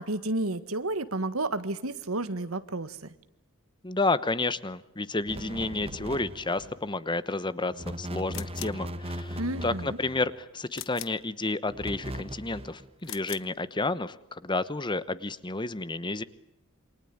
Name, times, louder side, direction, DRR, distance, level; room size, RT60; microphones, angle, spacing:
voice 1, 0.0-3.0 9.4-10.0, right 2 dB, 90° right, 12 dB, 1.7 m, -31 dB
voice 2, 3.8-16.2, left 2 dB, 20° left, 15 dB, 1.0 m, -31 dB
sound 1, 5.3-6.8 7.7-10.3 11.7-12.9, equal, 30° right, 1.8 m, -38 dB
sound 2, 8.3-8.9 10.7-11.3 13.0-13.5, left 13 dB, 65° left, 1.0 m, -41 dB
28.0 x 24.0 x 8.7 m, 0.79 s
head